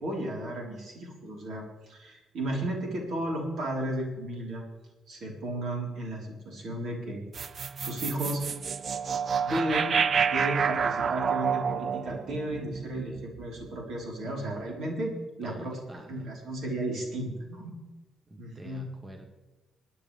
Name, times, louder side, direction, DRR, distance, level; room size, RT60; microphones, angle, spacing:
voice 1, 0.0-4.6 5.1-7.2 7.8-8.4 9.3-10.0 10.3-17.8 18.4-18.8, right 1 dB, 70° right, -1 dB, 4.0 m, -34 dB
sound 1, 7.3-13.7, right 6 dB, 50° right, 0.5 m, -29 dB
voice 2, 15.4-16.2 18.3-19.3, right 1 dB, 20° right, 4 dB, 1.3 m, -46 dB
27.5 x 9.4 x 3.4 m, 1.1 s
cardioid pair, 80°, 0 cm